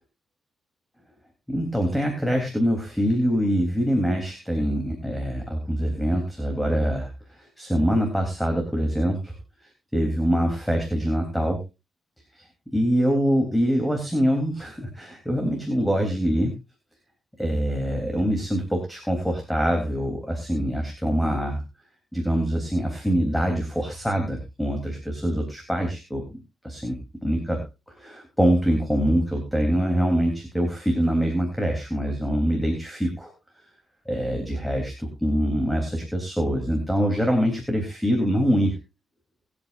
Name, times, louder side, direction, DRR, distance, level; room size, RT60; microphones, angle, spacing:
voice 1, 1.5-7.1 7.4-9.3 9.9-11.6 12.4-12.5 12.7-16.6 17.4-21.6 22.1-27.6 28.0-33.3 34.0-38.8, equal, ahead, 3 dB, 3.3 m, -24 dB
23.0 x 8.6 x 2.5 m, 0.27 s
cardioid pair, 100°, 0 cm